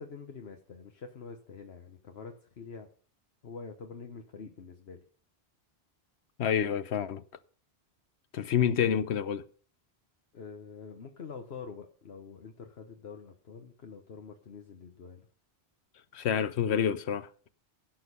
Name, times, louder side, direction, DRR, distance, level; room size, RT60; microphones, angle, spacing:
voice 1, 0.0-2.9 3.4-5.0 10.3-15.3, left 5 dB, 70° left, 1.3 m, -46 dB
voice 2, 6.4-7.2 8.3-9.5 16.1-17.5, left 8 dB, 90° left, 1.0 m, -28 dB
16.0 x 6.5 x 5.5 m
omnidirectional pair, 1.1 m